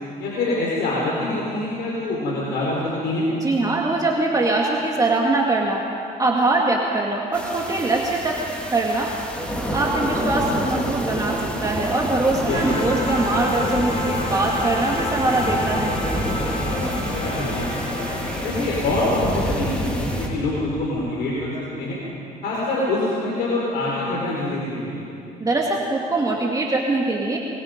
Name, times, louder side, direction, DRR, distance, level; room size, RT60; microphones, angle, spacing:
voice 1, 0.2-3.3 12.5-12.6 16.7-18.1 18.4-21.5 21.8-22.0 22.4-25.0, left 2 dB, 75° left, -5 dB, 4.9 m, -25 dB
voice 2, 3.4-5.8 6.2-8.4 8.7-9.2 9.7-15.9 25.4-27.4, right 2 dB, 20° right, -1 dB, 2.2 m, -22 dB
sound 1, 7.3-20.3, equal, 5° left, 3.6 m, -28 dB
sound 2, 12.5-21.1, left 2 dB, 40° left, 5.3 m, -30 dB
26.5 x 23.0 x 5.3 m, 2.7 s
cardioid pair, 110°, 17 cm